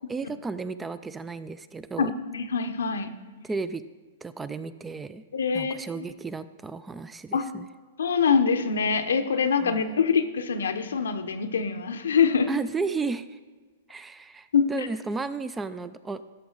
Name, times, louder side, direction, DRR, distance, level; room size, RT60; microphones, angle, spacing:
voice 1, 0.1-2.1 3.4-3.8 4.2-5.2 5.5-7.7 9.6-9.8 12.5-13.4 13.9-16.3, right 4 dB, 10° right, 14 dB, 0.3 m, -33 dB
voice 2, 2.0-3.1 5.3-6.0 7.3-7.4 8.0-12.5 14.5-14.9, left 6 dB, 85° left, 8 dB, 0.8 m, -24 dB
13.0 x 6.2 x 4.0 m, 1.4 s
hypercardioid pair, 135°, 0 cm